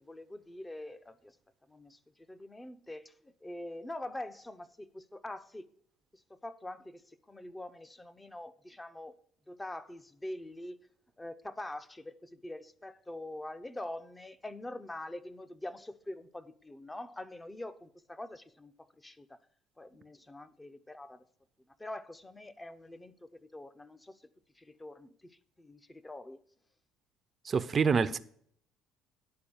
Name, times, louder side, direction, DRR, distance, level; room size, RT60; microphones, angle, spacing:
voice 1, 0.0-1.4 1.7-2.0 2.3-5.7 6.1-9.2 9.5-10.8 11.2-19.4 19.8-21.3 21.8-24.2 24.5-26.4, left 1 dB, 15° left, 0.8 m, -44 dB
voice 2, 27.5-28.2, right 5 dB, 35° right, 0.6 m, -26 dB
10.5 x 4.3 x 7.0 m
supercardioid pair, 75°, 0 cm